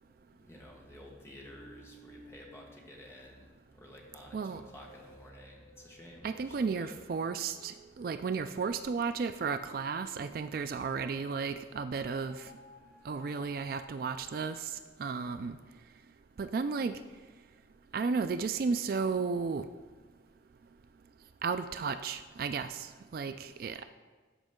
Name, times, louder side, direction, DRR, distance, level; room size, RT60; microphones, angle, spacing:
voice 1, 0.0-7.0, left 1 dB, 15° left, -2 dB, 1.4 m, -52 dB
sound 1, 1.4-11.6 12.1-14.9, left 1 dB, 60° left, 2.2 m, -58 dB
voice 2, 6.2-12.5 13.0-15.6 16.4-17.0 17.9-19.7 21.4-23.8, right 5 dB, 50° right, 10 dB, 0.3 m, -34 dB
13.0 x 5.2 x 3.7 m, 1.4 s
head